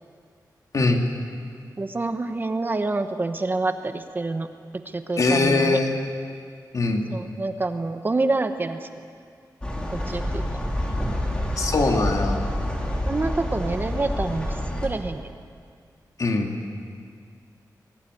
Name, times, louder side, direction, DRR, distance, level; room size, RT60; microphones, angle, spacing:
voice 1, 0.7-1.1 5.2-5.9 6.7-7.1 11.6-12.4 16.2-16.6, left 3 dB, 50° left, 2 dB, 2.5 m, -21 dB
voice 2, 1.8-4.5 4.7-5.8 7.1-8.9 9.9-10.7 13.1-15.3, right 3 dB, 30° right, 8 dB, 1.0 m, -27 dB
sound 1, 9.6-14.9, left 1 dB, 15° left, 2.9 m, -27 dB
23.0 x 18.5 x 9.8 m, 2.2 s
wide cardioid pair, 180°, 7 cm